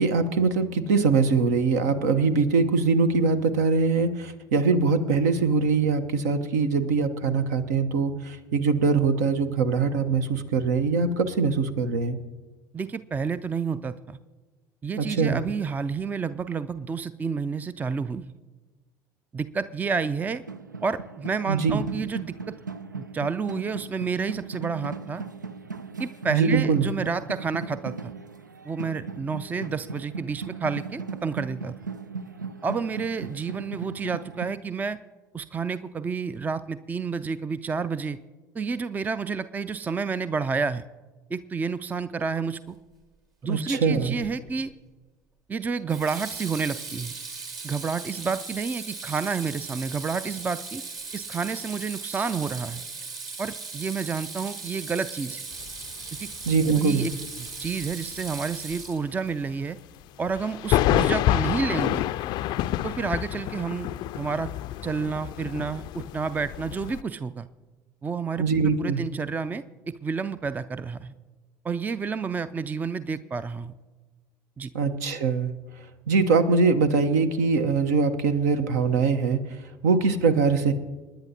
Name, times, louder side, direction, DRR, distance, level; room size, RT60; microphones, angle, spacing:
voice 1, 0.0-12.2 15.0-15.4 21.5-21.8 26.3-26.9 43.4-44.2 56.5-57.0 68.4-69.0 74.7-75.5 76.1-79.4 79.8-80.7, right 4 dB, 65° right, 10 dB, 0.9 m, -22 dB
voice 2, 12.7-14.2 14.8-18.4 19.3-20.4 20.8-22.6 23.0-25.2 26.0-28.1 28.6-31.7 32.6-35.0 35.3-38.2 38.5-40.8 41.3-42.8 43.4-44.7 45.5-47.1 47.6-50.8 51.1-52.8 53.4-55.4 56.2-56.3 56.6-57.1 57.6-59.8 60.2-62.0 62.8-64.5 64.8-67.5 68.0-71.1 71.6-73.7 74.6-74.7, right 5 dB, 15° right, 15 dB, 0.4 m, -30 dB
sound 1, 20.2-34.5, right 4 dB, 85° right, 0.4 m, -38 dB
Water tap faucet / Sink (filling or washing), 44.2-44.6 45.9-59.3, right 4 dB, 40° right, 2.2 m, -38 dB
sound 2, 55.5-57.2 57.5-57.9 58.2-58.3 58.7-58.8 60.3-67.0, left 14 dB, 45° left, 0.4 m, -28 dB
28.0 x 10.0 x 2.8 m, 1.3 s
figure-of-eight pair, 65°, 10 cm